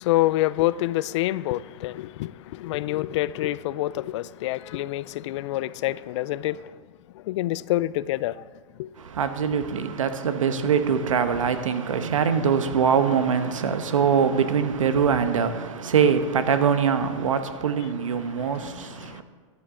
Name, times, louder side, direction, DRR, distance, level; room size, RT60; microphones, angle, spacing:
voice 1, 0.0-6.7 7.1-8.4 8.8-8.9 18.3-19.2, left 16 dB, 65° left, 0.4 m, -27 dB
voice 2, 9.0-19.2, right 6 dB, 90° right, 1.1 m, -23 dB
14.5 x 11.0 x 3.8 m
hypercardioid pair, 115°, 16 cm